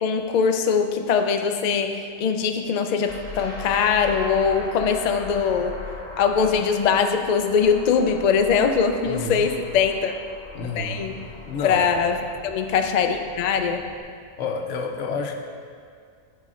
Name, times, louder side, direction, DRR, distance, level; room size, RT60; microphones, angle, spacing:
voice 1, 0.0-5.8 6.2-10.1 10.8-11.2 11.6-12.2 12.4-13.8, left 6 dB, 60° left, 6 dB, 0.4 m, -22 dB
sound 1, 3.1-14.0, left 2 dB, 40° left, 1.1 m, -40 dB
voice 2, 9.0-9.4 10.5-11.0 11.5-11.9 14.4-15.3, left 4 dB, 80° left, 3 dB, 1.0 m, -29 dB
12.5 x 5.1 x 2.5 m, 2.2 s
omnidirectional pair, 1.2 m